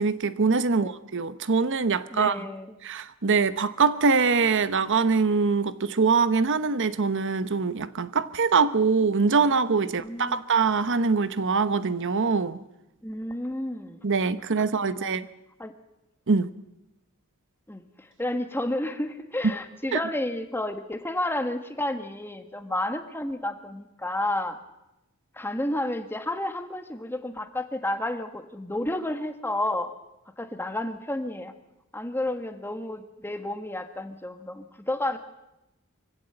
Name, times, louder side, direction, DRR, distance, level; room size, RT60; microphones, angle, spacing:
voice 1, 0.0-2.4 2.8-12.6 14.0-15.3 16.3-16.5 19.9-20.0, right 4 dB, 60° right, 0.9 m, -23 dB
voice 2, 2.1-2.8 10.0-10.4 13.0-14.0 14.6-15.1 15.6-15.7 17.7-24.6 25.3-29.9 30.4-31.5 31.9-35.2, left 1 dB, 10° left, 1.5 m, -31 dB
24.0 x 16.0 x 7.9 m
head